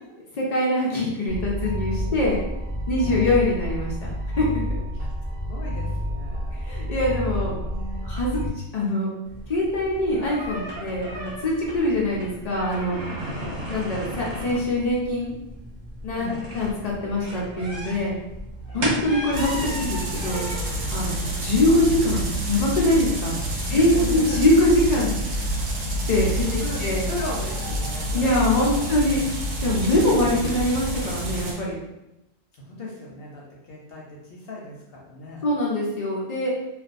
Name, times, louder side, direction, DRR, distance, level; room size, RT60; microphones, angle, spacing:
voice 1, 0.4-2.4 2.9-3.9 4.4-4.8 6.5-7.6 8.0-8.4 8.7-9.1 9.5-12.9 13.7-15.3 16.0-18.1 18.7-20.4 20.9-25.1 26.1-27.0 28.1-29.2 29.6-31.8 35.4-36.5, left 1 dB, 90° left, -4 dB, 0.3 m, -23 dB
sound 1, 1.3-8.5, equal, 20° left, 0.4 m, -29 dB
voice 2, 5.5-6.5 7.3-8.1 13.3-13.7 16.1-16.4 18.7-19.0 21.0-21.4 23.7-24.4 26.3-28.3 28.6-28.9 29.9-30.5 32.5-35.4, left 2 dB, 65° left, -3 dB, 0.6 m, -37 dB
sound 2, 9.2-23.1, right 1 dB, 55° right, 0.5 m, -35 dB
sound 3, 19.3-31.5, right 1 dB, 75° right, 0.9 m, -28 dB
2.5 x 2.2 x 2.4 m, 0.91 s
omnidirectional pair, 1.3 m